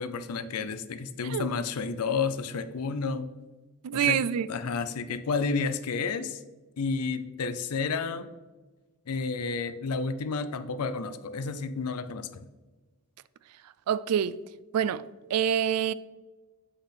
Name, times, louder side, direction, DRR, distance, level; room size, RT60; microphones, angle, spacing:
voice 1, 0.0-3.3 3.9-4.2 4.5-6.4 6.8-8.3 9.1-12.5, left 4 dB, 75° left, 0.5 m, -31 dB
voice 2, 3.8-4.5 13.9-14.3 14.7-15.0 15.3-15.9, right 9 dB, 85° right, 0.3 m, -26 dB
7.9 x 4.2 x 3.4 m
head